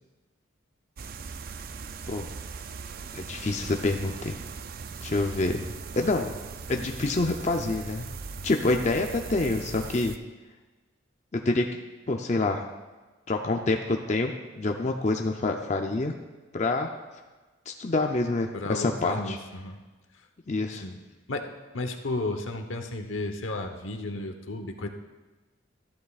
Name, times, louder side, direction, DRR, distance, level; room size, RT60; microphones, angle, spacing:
sound 1, 1.0-10.2, right 5 dB, 50° right, 0.4 m, -39 dB
voice 1, 3.1-4.4 5.0-5.6 6.0-6.3 6.7-8.0 8.4-10.1 11.3-11.6 12.1-12.7 13.3-16.1 16.5-16.9 17.7-19.4 20.5-20.8, left 2 dB, 35° left, 3 dB, 0.5 m, -27 dB
voice 2, 18.5-19.8 20.8-21.0 21.3-24.9, left 2 dB, 80° left, 5 dB, 1.0 m, -33 dB
13.5 x 11.5 x 2.4 m, 1.2 s
head